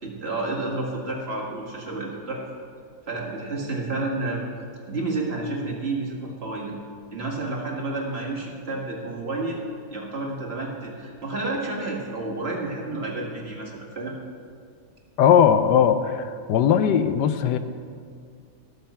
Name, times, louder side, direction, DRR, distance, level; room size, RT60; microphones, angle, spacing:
voice 1, 0.0-2.5 3.1-4.4 4.9-6.7 7.1-9.6 9.9-14.2, right 2 dB, 35° right, -2 dB, 1.9 m, -30 dB
voice 2, 15.2-17.6, left 8 dB, 75° left, 10 dB, 1.2 m, -19 dB
18.0 x 7.0 x 4.3 m, 2.2 s
omnidirectional pair, 1.9 m